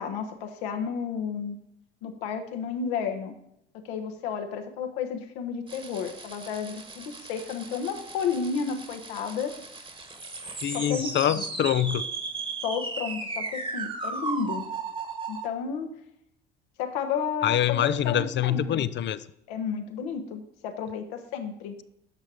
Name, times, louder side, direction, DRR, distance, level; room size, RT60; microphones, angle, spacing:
voice 1, 0.0-1.6 2.0-3.3 3.7-9.5 10.7-11.4 12.6-14.6 15.3-15.9 16.8-18.9 19.5-21.8, left 6 dB, 70° left, 5 dB, 1.3 m, -32 dB
sound 1, 5.7-15.5, right 4 dB, 15° right, 1.4 m, -36 dB
voice 2, 10.6-12.0 17.4-19.2, left 11 dB, 40° left, 15 dB, 0.5 m, -25 dB
9.6 x 6.0 x 4.9 m, 0.77 s
hypercardioid pair, 65°, 30 cm